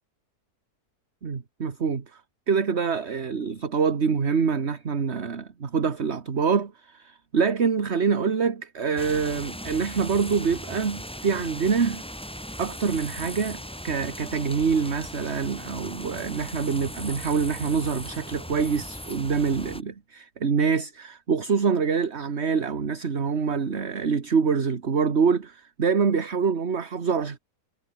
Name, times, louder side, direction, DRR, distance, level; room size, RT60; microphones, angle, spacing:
voice 1, 1.2-2.2 2.5-12.0 12.6-27.4, right 5 dB, 40° right, 1.8 m, -25 dB
sound 1, 9.0-19.8, equal, 5° left, 3.5 m, -38 dB
omnidirectional pair, 1.7 m